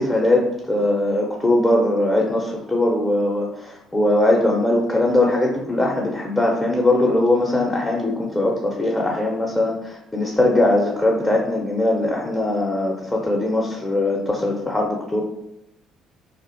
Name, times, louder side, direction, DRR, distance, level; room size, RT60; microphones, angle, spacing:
voice 1, 0.0-15.2, left 1 dB, 15° left, -2 dB, 0.5 m, -20 dB
2.4 x 2.0 x 2.5 m, 0.85 s
hypercardioid pair, 55°, 0 cm